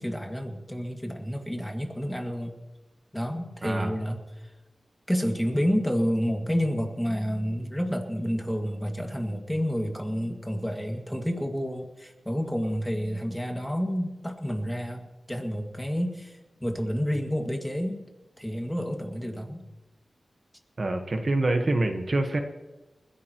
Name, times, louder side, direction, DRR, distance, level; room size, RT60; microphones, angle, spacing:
voice 1, 0.0-2.5 3.1-4.5 5.1-18.1 18.4-19.6, equal, 5° left, 2 dB, 2.1 m, -29 dB
voice 2, 3.6-3.9 20.8-22.4, right 2 dB, 45° right, 5 dB, 1.3 m, -26 dB
29.5 x 11.0 x 3.0 m, 1.2 s
wide cardioid pair, 115°, 0 cm